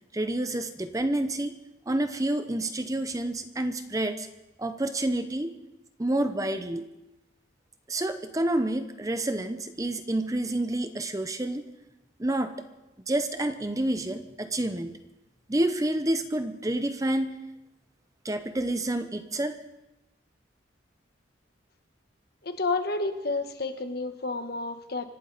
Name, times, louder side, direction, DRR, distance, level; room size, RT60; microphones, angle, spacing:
voice 1, 0.1-1.5 1.9-4.3 4.6-5.6 6.0-6.9 7.9-11.6 12.2-12.5 13.1-15.0 15.5-17.4 18.2-19.5, right 1 dB, 15° right, 9 dB, 0.7 m, -28 dB
voice 2, 22.4-25.1, left 3 dB, 55° left, 8 dB, 1.2 m, -30 dB
25.5 x 12.0 x 4.0 m, 0.99 s
head